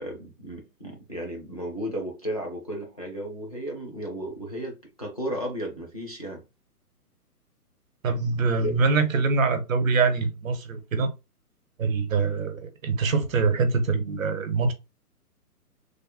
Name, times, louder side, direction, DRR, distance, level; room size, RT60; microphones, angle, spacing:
voice 1, 0.0-6.4 8.6-8.7, right 1 dB, 25° left, 0.4 m, -34 dB
voice 2, 8.0-11.1 11.8-14.7, right 4 dB, 55° right, 0.9 m, -24 dB
3.3 x 2.0 x 4.2 m
figure-of-eight pair, 135°, 47 cm